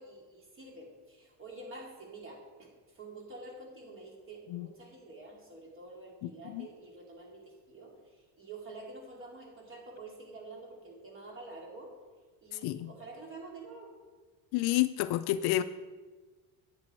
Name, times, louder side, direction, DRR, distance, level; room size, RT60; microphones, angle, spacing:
voice 1, 0.0-11.9 12.4-14.0, right 2 dB, 30° right, 2.8 m, -48 dB
voice 2, 6.2-6.7 12.5-12.9 14.5-15.6, left 15 dB, 60° left, 0.5 m, -30 dB
9.8 x 8.8 x 4.4 m
cardioid pair, 135°, 43 cm